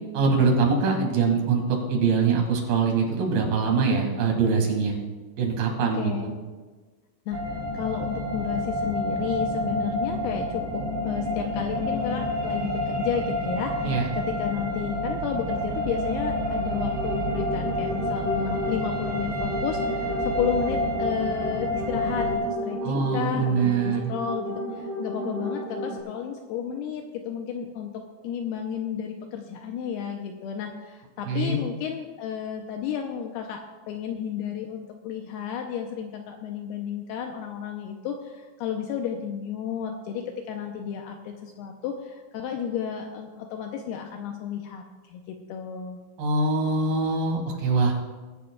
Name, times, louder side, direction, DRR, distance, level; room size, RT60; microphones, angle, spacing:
voice 1, 0.1-5.0 5.4-6.3 13.8-14.1 22.8-24.1 31.3-31.6 46.2-47.9, right 4 dB, 65° right, 0 dB, 3.8 m, -23 dB
voice 2, 5.9-6.3 7.3-27.9 28.2-46.0, left 8 dB, 80° left, 3 dB, 2.5 m, -32 dB
sound 1, 7.3-22.4, left 1 dB, 85° right, 4.8 m, -29 dB
sound 2, 16.5-26.0, equal, 45° right, 3.2 m, -33 dB
21.0 x 10.5 x 2.3 m, 1.3 s
omnidirectional pair, 4.9 m